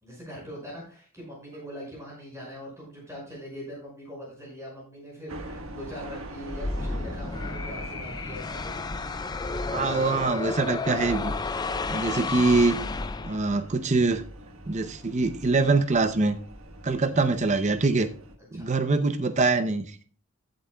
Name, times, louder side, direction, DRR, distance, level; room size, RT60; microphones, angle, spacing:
voice 1, 0.0-8.7 18.5-18.7, equal, 15° right, -4 dB, 5.5 m, -42 dB
sound 1, 5.3-18.4, right 1 dB, 65° right, 1.4 m, -44 dB
sound 2, 6.5-13.7, left 3 dB, 20° left, 0.3 m, -32 dB
voice 2, 9.7-11.3 11.9-12.8 13.2-14.2 14.7-16.4 16.8-18.1 18.5-19.9, right 3 dB, 30° right, 10 dB, 0.5 m, -24 dB
15.5 x 8.0 x 2.3 m, 0.42 s
head